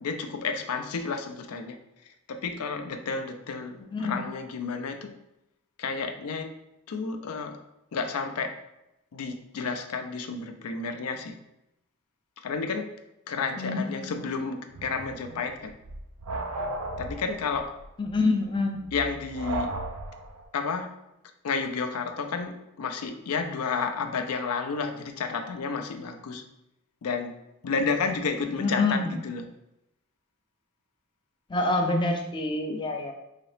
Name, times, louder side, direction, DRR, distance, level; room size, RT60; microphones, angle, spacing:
voice 1, 0.0-1.8 2.3-5.1 5.8-6.5 6.9-7.6 7.9-8.5 9.1-11.4 12.4-12.9 13.3-15.7 17.0-17.7 18.9-19.7 20.5-20.9 21.4-26.4 27.0-27.3 27.6-29.5, left 5 dB, 90° left, 6 dB, 0.4 m, -31 dB
voice 2, 3.9-4.2 13.6-14.2 18.0-18.8 28.6-29.1 31.5-33.1, left 3 dB, 20° left, 3 dB, 0.3 m, -26 dB
sound 1, 14.7-20.4, right 2 dB, 90° right, 0.5 m, -36 dB
4.0 x 2.8 x 3.2 m, 0.88 s
head